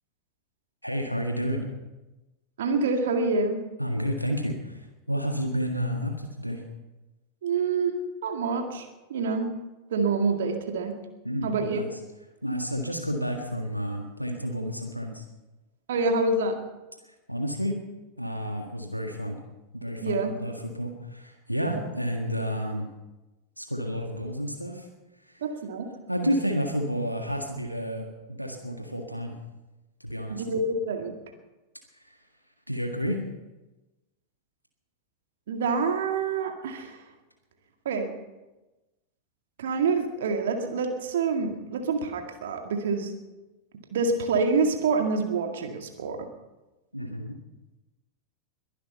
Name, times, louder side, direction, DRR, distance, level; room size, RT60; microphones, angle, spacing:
voice 1, 0.8-1.7 3.8-6.6 11.2-11.9 12.4-15.2 17.1-17.8 18.2-19.4 19.7-22.9 23.6-24.9 25.3-25.4 26.1-29.3 30.0-30.4 32.0-32.2 32.7-33.2 46.9-47.4, equal, 90° right, 3 dB, 1.8 m, -30 dB
voice 2, 2.6-3.6 7.4-7.9 8.2-9.5 9.9-10.9 11.4-11.8 15.9-16.6 20.0-20.3 21.7-21.8 25.4-25.9 30.3-31.2 35.5-37.0 37.9-38.1 39.6-43.2 43.9-46.3, right 4 dB, 60° right, 4 dB, 2.1 m, -27 dB
22.0 x 11.5 x 5.5 m, 1.1 s
figure-of-eight pair, 90°, 0 cm